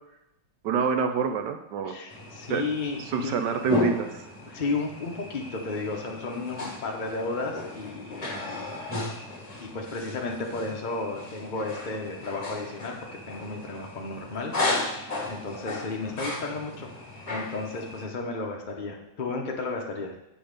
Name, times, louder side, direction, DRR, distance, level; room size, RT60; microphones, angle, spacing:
voice 1, 0.6-1.9 2.5-2.6 3.1-4.2, right 6 dB, 70° right, 7 dB, 1.2 m, -27 dB
voice 2, 1.8-3.4 4.5-8.7 9.6-16.9 17.3-20.2, left 3 dB, 50° left, 0 dB, 0.5 m, -33 dB
sound 1, 2.1-18.0, left 1 dB, 25° left, 1.1 m, -35 dB
8.4 x 5.2 x 5.1 m, 0.90 s
omnidirectional pair, 2.1 m